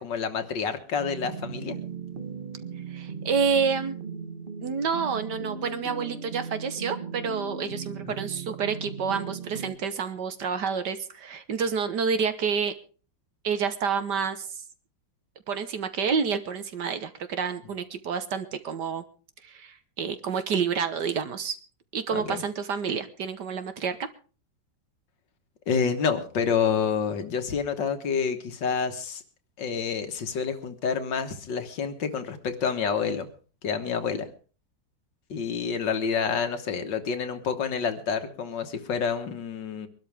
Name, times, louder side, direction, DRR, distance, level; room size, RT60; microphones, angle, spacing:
voice 1, 0.0-1.8 8.1-8.2 22.1-22.4 25.7-29.2 29.6-33.3 33.6-34.3 35.3-39.9, left 6 dB, 65° left, 8 dB, 2.0 m, -28 dB
sound 1, 1.0-9.8, right 5 dB, 30° right, 1.1 m, -37 dB
voice 2, 2.9-4.0 4.6-12.7 13.4-14.6 15.5-19.0 19.4-21.6 21.9-24.1, right 6 dB, 60° right, 10 dB, 1.7 m, -29 dB
23.5 x 12.5 x 3.5 m, 0.37 s
omnidirectional pair, 2.2 m